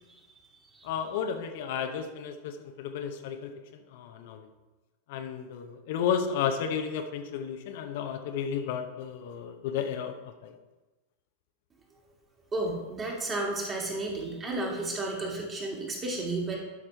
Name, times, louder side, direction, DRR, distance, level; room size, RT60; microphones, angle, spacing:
voice 1, 0.8-3.5 3.9-4.5 5.1-10.1 10.4-10.6, left 7 dB, 50° left, 5 dB, 0.7 m, -32 dB
voice 2, 12.5-16.6, right 2 dB, 20° right, -1 dB, 2.2 m, -32 dB
12.0 x 6.0 x 3.3 m, 1.1 s
figure-of-eight pair, 90°, 0 cm